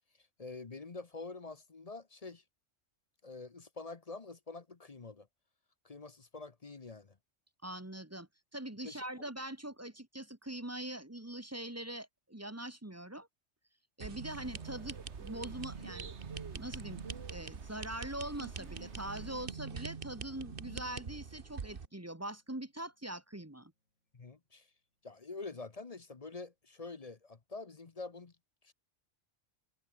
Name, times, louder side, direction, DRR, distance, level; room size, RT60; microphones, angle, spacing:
voice 1, 0.4-2.4 3.2-5.3 5.8-7.2 8.8-9.3 24.1-24.7 25.0-28.3 28.6-28.7, left 3 dB, 35° left, 1.0 m, -46 dB
voice 2, 7.6-13.3 14.0-16.1 16.5-17.0 17.3-23.7, right 1 dB, 15° right, 1.4 m, -43 dB
sound 1, 14.0-21.9, right 5 dB, 50° right, 1.4 m, -45 dB
sound 2, 14.3-19.5, right 5 dB, 70° right, 1.9 m, -49 dB
Acoustic guitar / Strum, 18.5-24.7 25.1-25.2, left 1 dB, 85° left, 7.3 m, -70 dB
omnidirectional pair, 1.2 m